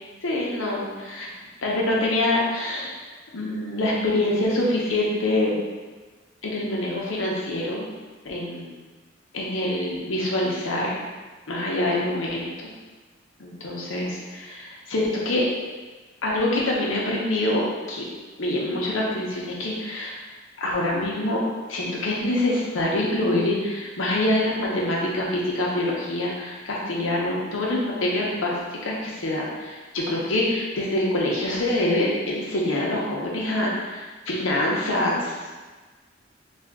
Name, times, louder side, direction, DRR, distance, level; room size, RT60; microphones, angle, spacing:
voice 1, 0.2-1.3 1.6-2.9 3.3-5.6 6.4-7.9 8.2-8.7 9.3-11.0 11.5-12.7 13.4-15.5 16.2-18.1 18.4-20.2 20.6-21.4 21.7-28.5 28.8-35.4, left 1 dB, 90° left, -3 dB, 0.8 m, -25 dB
3.5 x 2.4 x 3.5 m, 1.3 s
head